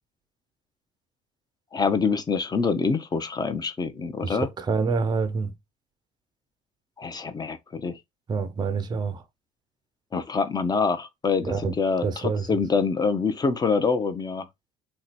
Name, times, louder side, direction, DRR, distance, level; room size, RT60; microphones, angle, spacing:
voice 1, 1.7-4.5 7.0-8.0 10.1-14.5, left 5 dB, 25° left, 0.7 m, -25 dB
voice 2, 4.2-5.5 8.3-9.2 11.4-11.7 12.0-12.5, right 4 dB, 25° right, 0.5 m, -27 dB
2.9 x 2.2 x 4.0 m
supercardioid pair, 85°, 16 cm